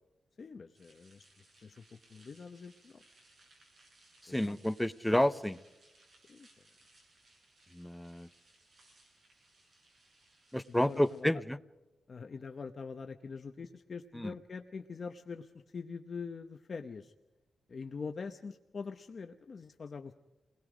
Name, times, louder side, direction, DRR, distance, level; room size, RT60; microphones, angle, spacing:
voice 1, 0.4-1.3 1.6-3.0 4.4-4.6 6.3-6.5 10.7-11.4 12.1-17.1 17.7-20.1, left 5 dB, 40° left, 6 dB, 0.9 m, -44 dB
sound 1, 0.7-11.2, right 2 dB, 45° right, 7.9 m, -65 dB
voice 2, 4.2-5.6 7.7-8.3 10.5-11.6 14.1-14.3, left 1 dB, 5° left, 11 dB, 0.7 m, -30 dB
29.5 x 21.0 x 5.0 m, 1.0 s
wide cardioid pair, 170°, 0 cm